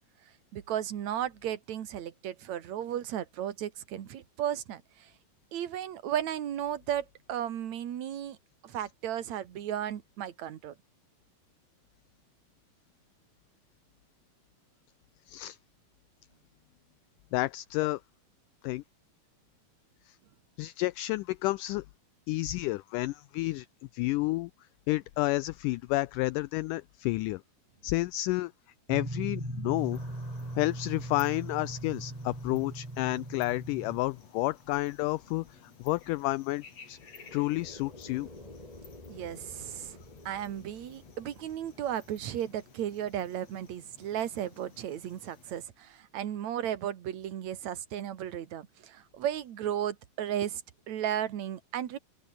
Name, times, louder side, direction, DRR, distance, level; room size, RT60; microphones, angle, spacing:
voice 1, 0.5-5.1 5.5-8.4 8.6-10.7 39.1-40.0 40.3-50.6 50.9-52.0, right 10 dB, 55° right, 2.6 m, -34 dB
voice 2, 15.3-15.6 17.3-18.0 18.6-18.8 20.1-20.2 20.6-21.9 22.3-23.7 23.9-24.5 24.9-27.4 27.8-28.5 28.9-30.0 30.6-37.0 37.3-38.3, left 19 dB, 80° left, 1.9 m, -30 dB
sound 1, 28.9-34.0, right 1 dB, 20° right, 0.5 m, -39 dB
sound 2, 29.8-45.7, left 5 dB, 45° left, 4.8 m, -56 dB
sound 3, 29.9-33.8 36.8-44.0, left 1 dB, 10° left, 3.4 m, -53 dB
open air
omnidirectional pair, 4.2 m